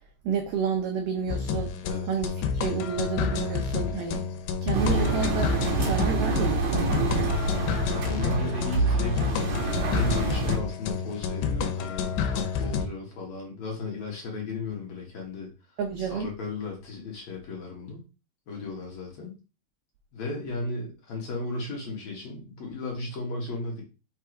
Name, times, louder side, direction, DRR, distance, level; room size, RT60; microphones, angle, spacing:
voice 1, 0.2-1.7 2.1-4.3 4.6-5.5 5.8-6.9 15.8-16.3, right 6 dB, 85° right, 1.9 m, -30 dB
sound 1, 1.3-12.9, left 6 dB, 90° left, 2.9 m, -29 dB
voice 2, 4.7-5.1 7.9-15.5 16.0-18.0 18.5-19.3 20.1-23.8, left 3 dB, 50° left, 2.6 m, -35 dB
Engine, 4.7-10.6, right 3 dB, 60° right, 2.2 m, -27 dB
6.2 x 3.6 x 4.6 m
omnidirectional pair, 4.7 m